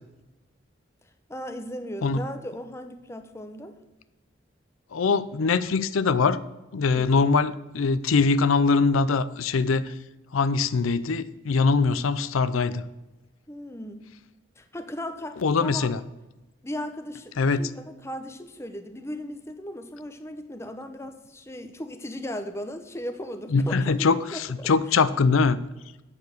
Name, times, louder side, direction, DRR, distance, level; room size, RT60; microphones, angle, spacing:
voice 1, 1.3-3.8 6.8-7.2 13.5-14.1 14.6-15.9 16.6-25.0, left 1 dB, 15° left, 7 dB, 0.7 m, -37 dB
voice 2, 4.9-6.4 6.7-9.9 10.3-12.8 15.4-16.0 17.4-17.6 23.5-25.6, left 4 dB, 90° left, 15 dB, 0.5 m, -22 dB
8.3 x 6.8 x 6.4 m, 1.0 s
head